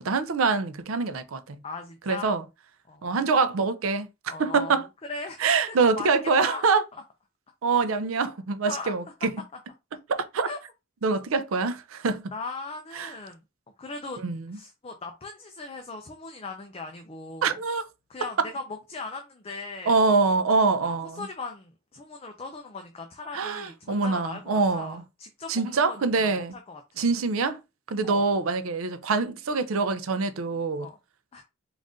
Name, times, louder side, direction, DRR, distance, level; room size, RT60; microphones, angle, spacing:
voice 1, 0.0-1.6 2.1-2.4 3.0-4.1 4.4-4.9 5.4-6.8 7.6-9.3 10.1-10.5 11.0-12.3 13.0-13.1 14.2-14.6 17.4-17.8 18.4-18.5 19.9-21.2 23.3-25.0 25.5-26.5 27.0-27.6 27.9-30.9, right 4 dB, 85° right, 0.5 m, -25 dB
voice 2, 1.6-2.3 2.9-3.2 4.3-4.7 5.1-6.1 6.4-6.6 6.9-7.0 8.7-8.9 10.4-10.6 11.5-11.7 12.3-13.4 13.8-14.2 14.5-17.6 18.1-20.0 20.8-27.0 28.0-28.2 30.8-31.0 31.3-31.4, left 3 dB, 30° left, 0.5 m, -39 dB
3.9 x 2.5 x 3.6 m
head